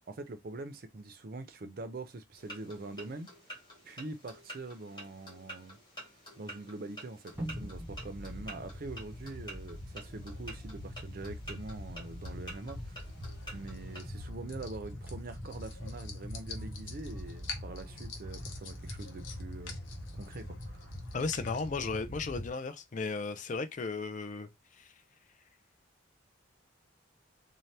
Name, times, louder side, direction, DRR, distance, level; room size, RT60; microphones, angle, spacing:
voice 1, 0.1-3.3 3.8-5.8 6.4-13.0 13.5-19.8 20.2-20.9, right 2 dB, 50° right, 0.5 m, -44 dB
sound 1, 2.4-14.1, right 1 dB, 25° left, 1.2 m, -50 dB
sound 2, 7.3-22.5, equal, 10° right, 0.7 m, -43 dB
sound 3, 13.0-21.7, left 4 dB, 80° left, 0.7 m, -48 dB
voice 2, 21.1-24.5 24.8-24.9, left 4 dB, 40° left, 0.4 m, -35 dB
2.7 x 2.1 x 3.2 m
head